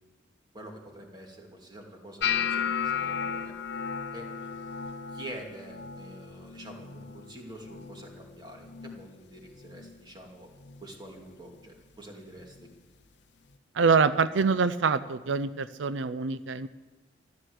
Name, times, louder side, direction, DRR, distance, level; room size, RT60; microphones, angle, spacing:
voice 1, 0.5-3.5 4.1-4.3 5.1-10.5 10.8-12.6, right 1 dB, 25° right, 1 dB, 2.5 m, -46 dB
sound 1, 2.2-8.3 8.6-9.1 9.4-10.0 10.6-10.8 12.6-12.7, left 7 dB, 65° left, 0.6 m, -34 dB
voice 2, 13.7-16.7, right 5 dB, 85° right, 14 dB, 0.5 m, -25 dB
14.5 x 11.5 x 7.9 m, 1.3 s
head